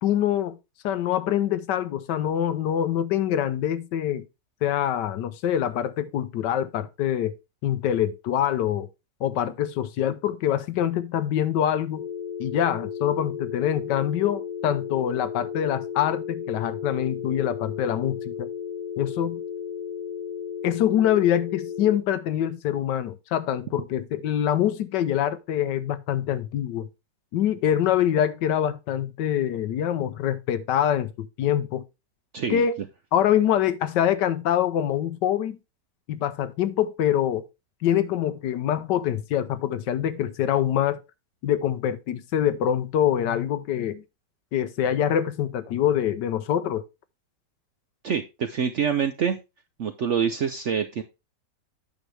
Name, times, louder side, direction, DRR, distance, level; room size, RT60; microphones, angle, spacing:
voice 1, 0.0-0.6 0.8-4.2 4.6-7.3 7.6-8.9 9.2-12.0 12.4-18.5 19.0-19.4 20.6-26.9 27.3-31.8 32.5-32.8 33.1-35.6 36.1-37.4 37.8-41.0 41.4-44.0 44.5-46.8, left 10 dB, 80° left, 1.3 m, -25 dB
sound 1, 12.0-22.0, left 7 dB, 50° left, 0.5 m, -34 dB
voice 2, 32.3-32.6 48.0-49.4 49.8-51.0, right 7 dB, 65° right, 0.7 m, -26 dB
9.0 x 6.2 x 3.3 m
omnidirectional pair, 1.9 m